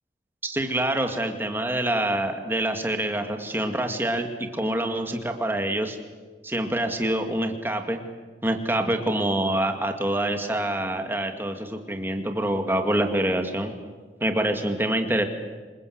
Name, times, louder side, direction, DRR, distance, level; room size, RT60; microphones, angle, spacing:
voice 1, 0.4-6.0 6.4-8.0 8.4-13.7 14.2-15.3, right 1 dB, 10° right, 5 dB, 2.1 m, -26 dB
27.0 x 21.0 x 8.0 m, 1.4 s
head